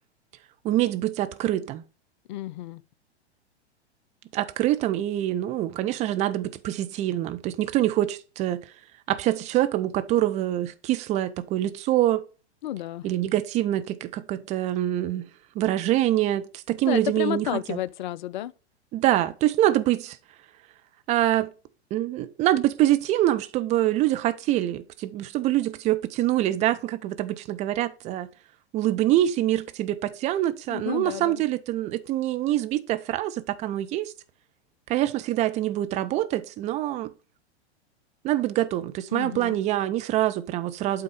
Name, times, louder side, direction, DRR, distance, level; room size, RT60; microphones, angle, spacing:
voice 1, 0.6-1.8 4.3-8.6 9.1-12.2 13.0-15.3 15.5-17.8 18.9-20.2 21.1-21.5 21.9-28.3 28.7-34.1 34.9-37.1 38.2-41.0, right 14 dB, 20° right, 0.5 m, -25 dB
voice 2, 2.3-2.8 12.6-13.1 16.8-18.5 30.7-31.4 39.1-39.6, left 13 dB, 45° left, 0.4 m, -31 dB
8.5 x 3.7 x 5.2 m
figure-of-eight pair, 100°, 34 cm